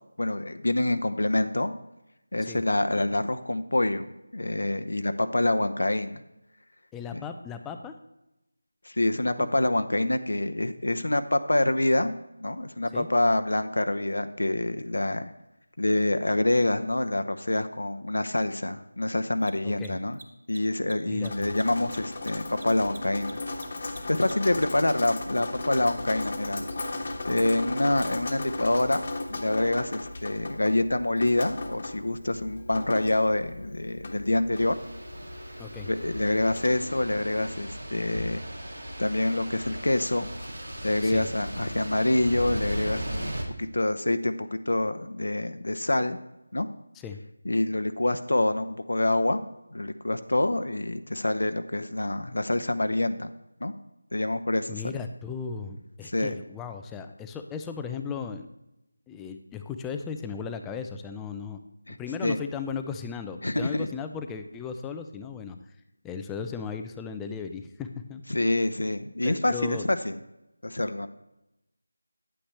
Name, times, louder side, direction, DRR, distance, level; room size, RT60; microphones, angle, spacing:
voice 1, 0.2-1.7 2.3-4.1 4.3-6.2 7.1-7.2 8.8-12.1 12.4-15.2 15.8-20.2 20.5-23.4 24.1-26.7 27.3-29.0 29.3-34.8 35.9-38.4 39.0-40.3 40.8-46.2 46.5-46.7 47.4-49.4 49.7-53.3 53.6-53.7 54.1-55.0 56.0-56.3 61.9-62.0 62.2-62.4 63.4-63.9 68.3-70.2 70.6-71.1, left 1 dB, 80° left, 9 dB, 0.7 m, -26 dB
voice 2, 6.9-7.9 9.4-9.5 12.9-13.1 19.6-20.0 21.1-21.6 35.6-35.9 41.0-41.3 46.9-47.2 54.7-58.5 59.1-61.6 62.0-65.6 66.0-68.2 69.2-69.8, left 6 dB, 5° left, 6 dB, 0.3 m, -36 dB
Mechanisms, 16.2-16.3 19.3-24.9, right 3 dB, 35° right, 0.9 m, -48 dB
Drip, 21.2-36.7, left 2 dB, 40° left, 1.1 m, -36 dB
sound 1, 34.5-43.4, equal, 85° right, 2.4 m, -37 dB
9.9 x 8.6 x 3.3 m, 0.91 s
figure-of-eight pair, 175°, 0 cm